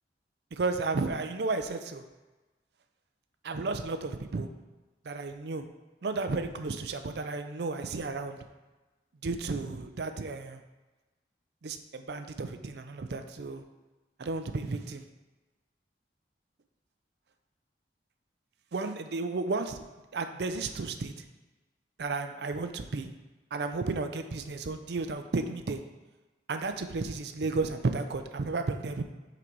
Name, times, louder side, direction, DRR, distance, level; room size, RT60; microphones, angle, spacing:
voice 1, 0.5-2.0 3.4-4.5 5.1-5.6 6.0-8.4 9.2-10.6 11.6-13.6 14.2-15.0 18.7-19.8 20.1-21.1 22.0-23.1 23.5-25.8 26.5-29.0, right 3 dB, 65° right, 8 dB, 0.5 m, -33 dB
6.1 x 3.9 x 4.6 m, 1.2 s
head